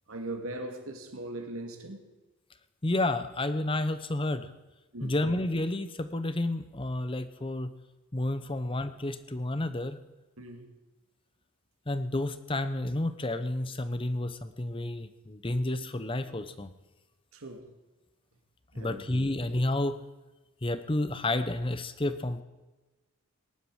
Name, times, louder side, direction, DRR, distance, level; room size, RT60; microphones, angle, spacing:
voice 1, 0.1-2.0 4.9-5.2 10.4-10.7 17.3-17.7 18.7-19.1, right 1 dB, 80° right, 4 dB, 2.2 m, -39 dB
voice 2, 2.8-4.5 5.0-7.7 8.1-10.0 11.9-16.7 18.8-20.0 20.6-22.4, left 1 dB, 25° left, 12 dB, 0.8 m, -30 dB
19.5 x 11.0 x 4.8 m, 1.1 s
head